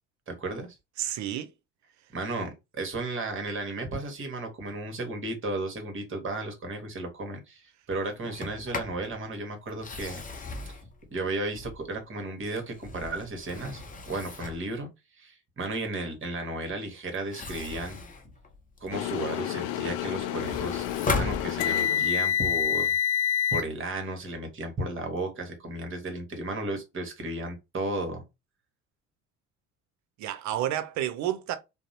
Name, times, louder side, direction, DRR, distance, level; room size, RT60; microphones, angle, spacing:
voice 1, 0.3-0.7 2.1-10.2 10.7-10.8 11.1-14.9 15.2-18.0 18.8-22.9 23.5-28.2, right 2 dB, 30° right, 1.1 m, -34 dB
voice 2, 1.0-1.5 30.2-31.6, right 12 dB, 45° right, 0.6 m, -30 dB
Sliding door, 8.2-9.0 9.7-12.0 12.6-14.7 17.1-19.1 19.5-22.0, left 3 dB, 20° left, 0.7 m, -37 dB
sound 1, 18.9-23.6, left 9 dB, 60° left, 0.5 m, -28 dB
2.6 x 2.0 x 2.7 m
hypercardioid pair, 65°, 40 cm